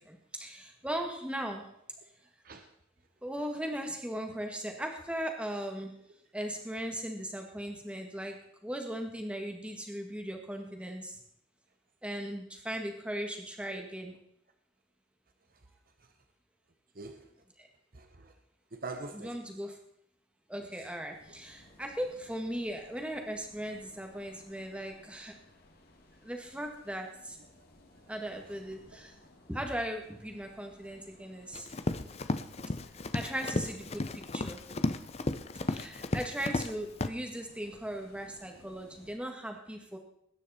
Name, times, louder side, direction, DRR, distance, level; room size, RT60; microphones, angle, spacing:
voice 1, 0.0-1.7 3.2-5.9 6.3-8.4 8.6-11.2 12.0-14.1 17.6-17.7 19.1-19.8 20.5-25.3 26.2-27.4 28.1-29.2 29.5-31.7 33.1-34.6 35.7-40.0, right 1 dB, 5° right, 3 dB, 1.7 m, -38 dB
voice 2, 16.9-17.3 17.9-18.3 18.7-19.3 27.5-27.6 35.6-35.7, right 3 dB, 45° right, 6 dB, 1.0 m, -44 dB
sound 1, 21.1-39.2, left 1 dB, 50° left, 2.1 m, -59 dB
Run, 31.5-36.7 37.0-37.1, left 2 dB, 30° left, 0.6 m, -33 dB
20.0 x 9.8 x 4.2 m, 0.72 s
head